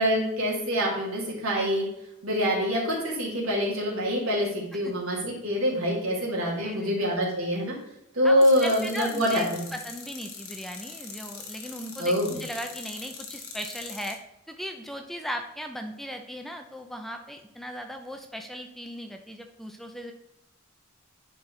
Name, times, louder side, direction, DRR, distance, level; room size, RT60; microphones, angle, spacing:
voice 1, 0.0-1.9 2.2-7.7 8.1-9.7 12.0-12.3, equal, 80° right, -4 dB, 2.7 m, -25 dB
voice 2, 6.5-7.1 8.2-9.5 9.7-14.2 14.5-20.1, equal, ahead, 4 dB, 0.5 m, -37 dB
sound 1, 8.4-14.1, left 5 dB, 80° left, 1.5 m, -42 dB
10.5 x 4.5 x 3.3 m, 0.88 s
head